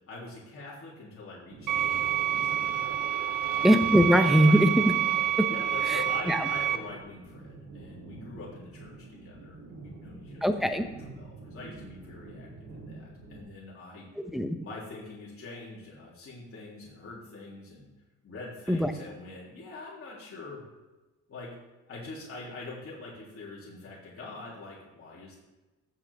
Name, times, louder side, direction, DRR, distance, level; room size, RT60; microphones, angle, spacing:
voice 1, 0.1-2.5 3.4-3.6 4.4-4.6 5.5-14.0 14.6-17.9 18.2-20.6 21.3-21.5 21.9-25.4, left 3 dB, 50° left, -6 dB, 3.2 m, -44 dB
sound 1, 1.5-13.4, right 2 dB, 75° right, 3.4 m, -48 dB
sound 2, 1.7-6.8, right 11 dB, 90° right, 0.8 m, -28 dB
voice 2, 3.6-4.9 5.9-6.5 10.4-10.8 14.3-14.5 18.7-18.9, equal, ahead, 6 dB, 1.0 m, -22 dB
14.5 x 6.4 x 3.6 m, 1.1 s
cardioid pair, 90°, 30 cm